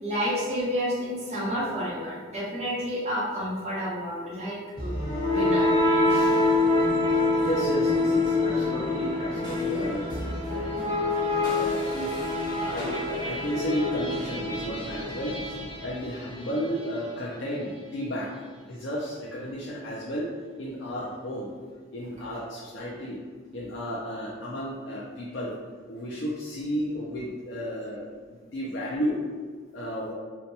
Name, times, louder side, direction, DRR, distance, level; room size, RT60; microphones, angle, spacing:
voice 1, 0.0-4.9 5.3-5.7 6.1-6.4, equal, 35° right, -6 dB, 0.8 m, -30 dB
sound 1, 4.8-16.7, left 2 dB, 25° left, 1.1 m, -26 dB
voice 2, 7.4-10.0 10.5-11.0 11.4-12.3 12.6-18.3 18.7-20.3 20.6-21.5 21.9-23.2 23.5-25.5 25.9-29.2 29.7-30.1, equal, 75° left, -5 dB, 0.5 m, -33 dB
2.8 x 2.2 x 4.0 m, 1.5 s
head